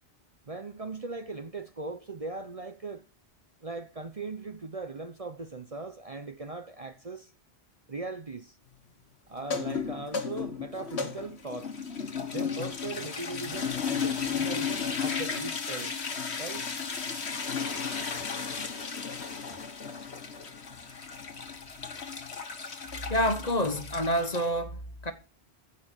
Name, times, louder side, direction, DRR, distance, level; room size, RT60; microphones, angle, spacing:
voice 1, 0.5-3.1 3.6-7.3 7.9-8.6 9.3-11.8 12.3-16.0 16.4-16.7, right 3 dB, 35° right, 0.9 m, -39 dB
sound 1, 9.4-24.5, left 6 dB, 75° left, 1.7 m, -34 dB
voice 2, 23.1-25.1, equal, 40° left, 1.3 m, -28 dB
15.5 x 5.7 x 6.7 m
omnidirectional pair, 1.1 m